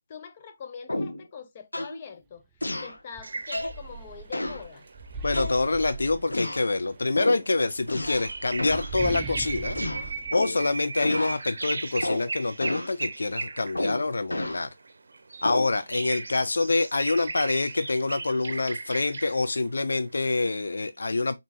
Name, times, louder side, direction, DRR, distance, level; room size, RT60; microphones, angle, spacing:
voice 1, 0.0-4.9, left 6 dB, 30° left, 0.6 m, -43 dB
sound 1, 0.9-1.3 1.7-2.0 2.6-3.0 3.5-3.8 4.3-4.7 5.3-5.9 6.3-6.7 7.2-7.5 7.9-8.3 8.6-8.9 9.7-10.7 11.0-11.4 12.0-12.3 12.6-12.9 13.7-14.6 15.4-15.8, left 1 dB, 90° left, 0.9 m, -31 dB
sound 2, 2.6-2.7 3.1-6.8 7.7-11.4, right 3 dB, 15° right, 0.3 m, -40 dB
sound 3, 3.2-14.0 14.6-19.5 20.3-20.7, right 3 dB, 60° right, 0.6 m, -37 dB
voice 2, 5.2-9.8 10.3-14.7 15.4-21.4, left 3 dB, 70° left, 0.4 m, -26 dB
3.8 x 3.7 x 2.6 m
figure-of-eight pair, 155°, 0 cm